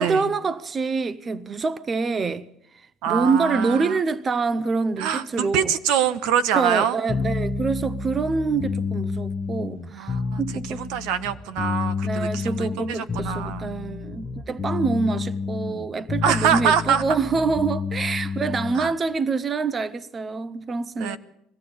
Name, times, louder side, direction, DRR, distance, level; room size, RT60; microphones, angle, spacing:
voice 1, 0.0-2.5 3.1-5.7 6.5-10.8 12.0-21.2, right 4 dB, 25° right, 0.7 m, -26 dB
voice 2, 3.0-4.0 5.0-7.0 9.9-10.4 10.8-13.7 16.2-17.0 18.7-18.9 21.0-21.2, right 8 dB, 80° right, 1.3 m, -24 dB
sound 1, 7.1-19.0, left 4 dB, 10° left, 1.6 m, -29 dB
22.0 x 15.5 x 8.8 m
cardioid pair, 145°, 0 cm